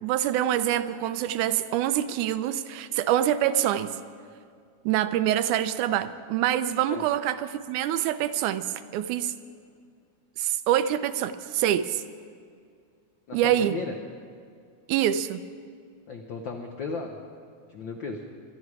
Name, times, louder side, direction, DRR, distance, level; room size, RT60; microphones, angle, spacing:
voice 1, 0.0-4.0 4.9-9.3 10.4-12.0 13.3-13.8 14.9-15.4, right 11 dB, 85° right, 12 dB, 2.1 m, -25 dB
voice 2, 13.3-14.0 16.1-17.2 17.7-18.2, left 4 dB, 85° left, 3 dB, 1.0 m, -35 dB
24.0 x 10.5 x 4.8 m, 2.2 s
omnidirectional pair, 3.4 m